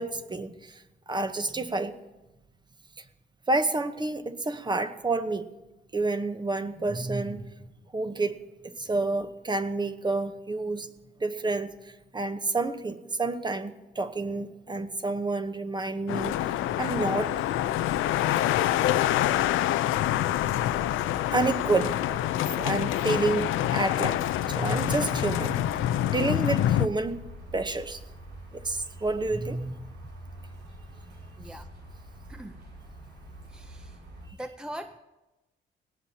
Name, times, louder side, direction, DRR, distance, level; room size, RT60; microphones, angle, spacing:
voice 1, 0.0-1.9 3.5-5.5 5.9-7.5 7.9-10.9 11.2-17.4 18.4-18.5 21.3-22.0 22.5-24.2 24.5-25.7 26.1-27.2 27.5-28.0 28.5-29.8, right 3 dB, 20° right, 9 dB, 1.0 m, -29 dB
sound 1, 16.1-26.9, left 13 dB, 85° left, 0.5 m, -26 dB
sound 2, 16.1-34.3, right 1 dB, 85° right, 5.4 m, -45 dB
voice 2, 31.4-31.7 32.3-32.6 33.5-34.0 34.3-35.0, right 1 dB, 5° right, 7 dB, 0.6 m, -41 dB
21.0 x 18.0 x 2.9 m, 1.1 s
cardioid pair, 90°, 20 cm